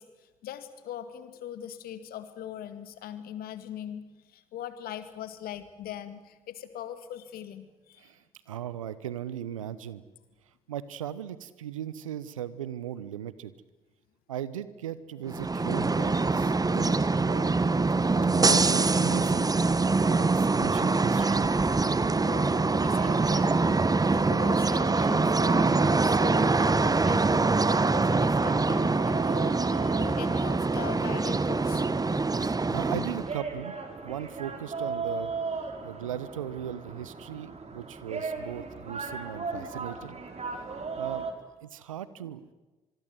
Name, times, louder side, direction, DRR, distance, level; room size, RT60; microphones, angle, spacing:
voice 1, 0.0-8.1 22.3-23.8 24.1-29.6 30.0-31.8, left 10 dB, 65° left, 10 dB, 2.2 m, -41 dB
voice 2, 8.5-10.0 10.7-13.5 14.3-17.6 18.3-19.5 19.8-21.4 27.7-27.8 32.5-33.7 34.0-35.3 35.8-40.2 41.0-41.3 41.6-42.5, right 10 dB, 85° right, 17 dB, 0.9 m, -38 dB
sound 1, 15.3-33.4, right 3 dB, 20° right, 1.2 m, -24 dB
sound 2, 22.6-41.3, right 4 dB, 40° right, 4.3 m, -39 dB
25.5 x 22.5 x 8.0 m, 1.2 s
figure-of-eight pair, 40°, 17 cm